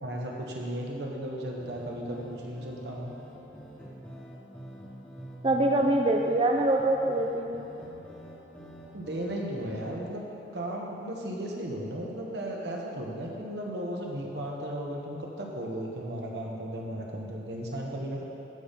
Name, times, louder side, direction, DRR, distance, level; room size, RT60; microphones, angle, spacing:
voice 1, 0.0-3.1 8.9-10.2 10.5-18.2, right 1 dB, 75° right, -1 dB, 1.2 m, -35 dB
sound 1, 1.6-9.9, right 1 dB, 5° left, 1.1 m, -46 dB
voice 2, 5.4-7.7, right 1 dB, 30° right, 1 dB, 0.4 m, -24 dB
14.0 x 5.7 x 3.6 m, 2.9 s
head